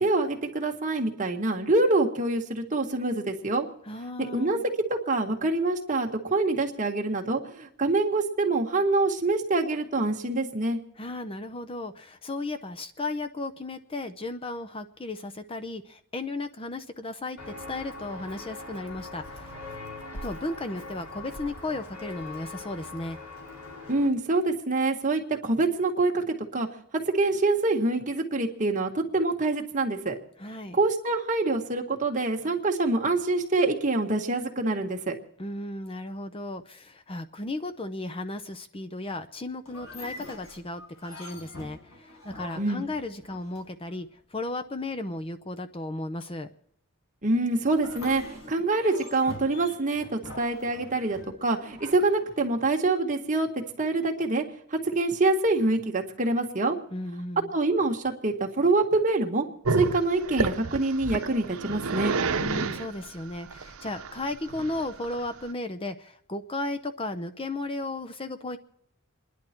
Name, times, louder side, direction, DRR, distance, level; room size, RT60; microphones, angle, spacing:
voice 1, 0.0-3.7 4.2-4.6 4.9-10.8 23.9-26.7 26.9-30.2 30.7-35.1 42.6-42.9 47.2-53.5 53.8-54.4 54.7-56.8 57.5-59.5 59.8-62.1, right 2 dB, 35° right, 2 dB, 1.8 m, -25 dB
voice 2, 3.8-4.6 11.0-19.7 20.2-23.2 30.4-30.8 35.4-46.5 56.9-57.5 62.4-68.6, left 2 dB, 25° left, 8 dB, 0.7 m, -35 dB
Walk footsteps, 17.4-24.1, left 2 dB, 90° left, 3.1 m, -41 dB
sound 1, 39.7-44.0 47.7-52.8, left 1 dB, 75° left, 5.4 m, -45 dB
Growling, 59.6-65.5, right 4 dB, 85° right, 0.9 m, -30 dB
28.0 x 11.0 x 4.5 m, 0.72 s
head